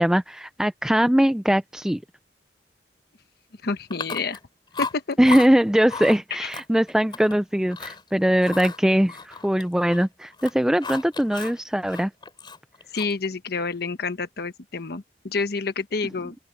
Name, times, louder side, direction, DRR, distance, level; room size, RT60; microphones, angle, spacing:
voice 1, 0.0-2.0 5.2-12.1, equal, 5° right, 0.4 m, -21 dB
voice 2, 3.6-4.4 4.8-5.2 6.4-6.5 12.9-16.4, left 4 dB, 65° left, 1.1 m, -28 dB
Chewing mastication, 3.9-4.5 4.7-5.5 5.9-6.2 6.5-7.4 7.7-8.0 8.4-10.1 10.3-11.6 11.9-13.3, left 4 dB, 30° left, 3.6 m, -34 dB
open air
head